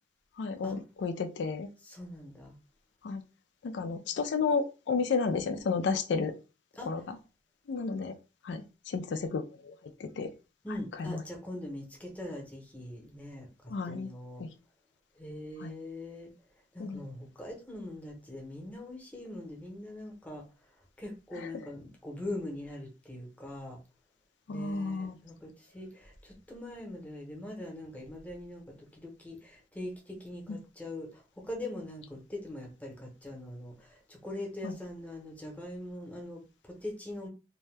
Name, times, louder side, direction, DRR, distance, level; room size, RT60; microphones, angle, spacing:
voice 1, 0.4-1.7 3.0-3.2 3.6-6.3 6.9-7.2 7.7-8.1 8.4-10.3 11.0-11.2 13.7-14.1 14.4-14.5 15.6-15.7 16.8-17.0 21.4-21.5 24.5-25.2 30.5-30.6 34.6-34.7, left 4 dB, 90° left, 0.4 m, -32 dB
voice 2, 1.8-2.6 6.8-6.9 10.6-14.4 15.2-16.3 16.7-20.4 21.0-23.8 24.5-37.3, left 1 dB, 10° left, 0.7 m, -42 dB
2.6 x 2.2 x 3.2 m
head